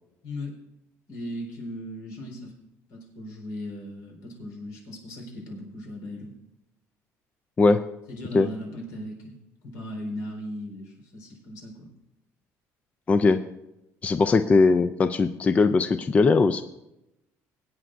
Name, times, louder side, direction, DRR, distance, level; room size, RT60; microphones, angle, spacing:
voice 1, 1.1-2.5 2.9-6.3 8.1-9.4 9.6-11.9, left 1 dB, 80° left, 0 dB, 4.0 m, -37 dB
voice 2, 13.1-13.5 14.0-16.6, left 4 dB, 25° left, 10 dB, 0.4 m, -20 dB
23.0 x 9.1 x 2.6 m, 0.88 s
cardioid pair, 135°, 6 cm